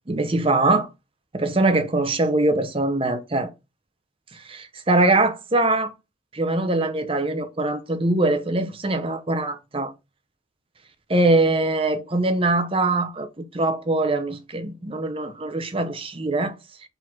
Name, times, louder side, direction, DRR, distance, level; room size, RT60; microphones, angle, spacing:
voice 1, 0.1-0.9 1.3-3.5 4.3-5.9 6.3-9.9 11.1-16.5, right 2 dB, 25° right, 0.8 m, -22 dB
4.8 x 3.9 x 5.6 m
head